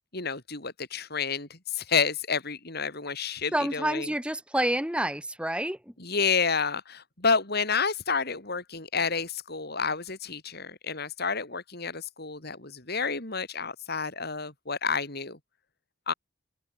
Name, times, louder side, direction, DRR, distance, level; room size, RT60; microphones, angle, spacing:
voice 1, 0.1-4.1 6.0-15.4 16.1-16.2, left 5 dB, 55° left, 4.9 m, -30 dB
voice 2, 3.5-5.9, right 1 dB, 5° right, 4.7 m, -28 dB
head